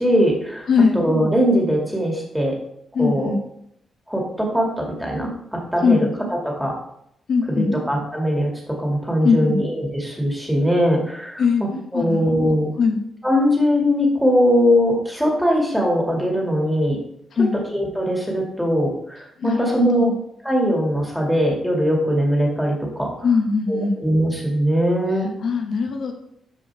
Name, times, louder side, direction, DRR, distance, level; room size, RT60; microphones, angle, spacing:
voice 1, 0.0-0.7 0.9-2.5 3.0-3.3 4.1-6.1 6.6-6.7 7.5-11.4 11.9-12.7 13.2-17.0 17.7-20.1 20.4-23.1 23.7-25.3, equal, ahead, -1 dB, 2.3 m, -20 dB
voice 2, 2.9-3.4 5.8-6.0 7.3-7.7 9.2-9.6 11.4-11.6 11.9-12.5 12.8-13.0 17.3-17.6 19.4-20.1 23.2-24.0 25.4-26.1, left 5 dB, 60° left, 4 dB, 1.0 m, -20 dB
13.0 x 4.9 x 3.5 m, 0.75 s
cardioid pair, 130°, 0 cm